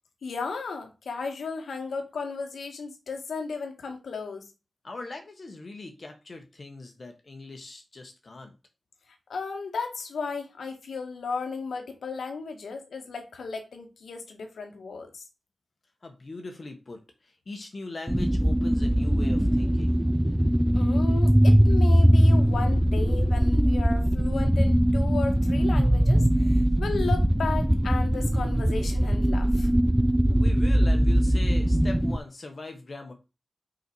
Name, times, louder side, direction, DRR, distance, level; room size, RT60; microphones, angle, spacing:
voice 1, 0.2-4.5 9.3-15.2 20.7-29.7, left 4 dB, 85° left, 1.8 m, -35 dB
voice 2, 4.8-8.5 16.0-20.0 30.3-33.1, left 2 dB, 45° left, 1.5 m, -41 dB
sound 1, 18.1-32.2, equal, 5° right, 0.5 m, -21 dB
5.8 x 5.7 x 4.7 m
wide cardioid pair, 115°, 0 cm